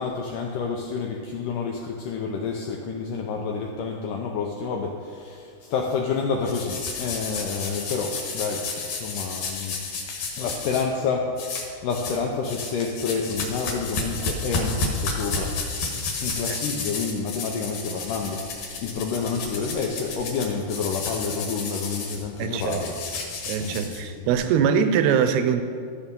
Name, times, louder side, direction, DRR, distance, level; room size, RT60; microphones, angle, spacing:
voice 1, 0.0-8.7 9.0-9.8 10.4-11.3 11.8-15.5 16.2-22.9 23.6-24.3, left 5 dB, 80° left, 1 dB, 1.9 m, -29 dB
sound 1, 6.4-10.8 11.4-12.2 12.4-24.3, left 3 dB, 60° left, 2.6 m, -32 dB
voice 2, 22.4-22.8 23.5-25.6, right 7 dB, 85° right, 9 dB, 2.7 m, -22 dB
13.0 x 7.1 x 5.3 m, 2.3 s
omnidirectional pair, 4.5 m